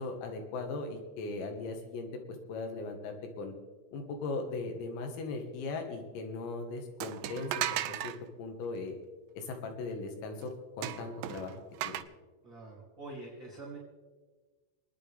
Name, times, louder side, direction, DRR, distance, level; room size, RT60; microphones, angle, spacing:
voice 1, 0.0-2.1 2.5-3.5 3.9-8.1 8.4-9.0 9.4-10.5 10.8-11.6 11.8-12.0, left 3 dB, 85° left, 3 dB, 4.4 m, -38 dB
sound 1, 7.0-8.2 10.8-12.0, right 13 dB, 90° right, 2.5 m, -35 dB
voice 2, 12.4-13.8, right 2 dB, 30° right, -6 dB, 2.5 m, -45 dB
29.0 x 10.0 x 3.5 m, 1.4 s
omnidirectional pair, 5.9 m